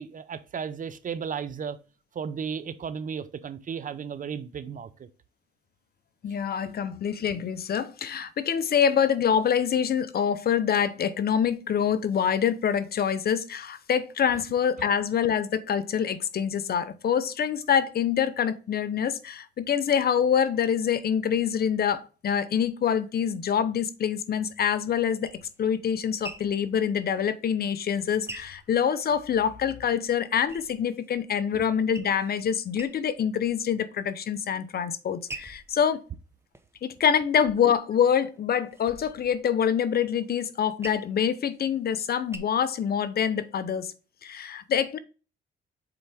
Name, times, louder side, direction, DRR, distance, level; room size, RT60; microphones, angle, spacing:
voice 1, 0.0-1.8 2.1-5.1 31.5-31.6, right 7 dB, 40° right, 0.7 m, -34 dB
voice 2, 6.2-36.0 36.8-43.9 44.2-45.0, left 8 dB, 50° left, 0.7 m, -25 dB
sound 1, 24.8-29.5 29.9-31.2 31.5-32.4 32.7-33.4 33.8-34.4 34.9-37.6 38.0-42.4, right 2 dB, 10° right, 0.9 m, -46 dB
7.0 x 4.6 x 3.5 m
cardioid pair, 90°, 20 cm